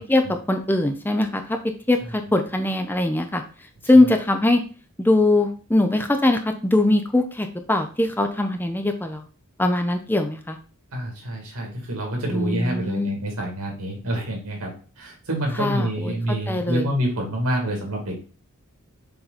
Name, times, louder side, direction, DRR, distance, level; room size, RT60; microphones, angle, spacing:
voice 1, 0.1-3.4 3.8-4.6 5.0-9.2 9.6-10.6 12.3-13.1 15.6-16.9, left 2 dB, 10° left, 6 dB, 0.5 m, -21 dB
voice 2, 10.9-18.2, right 1 dB, 85° right, 0 dB, 2.7 m, -27 dB
6.9 x 3.9 x 4.2 m, 0.37 s
head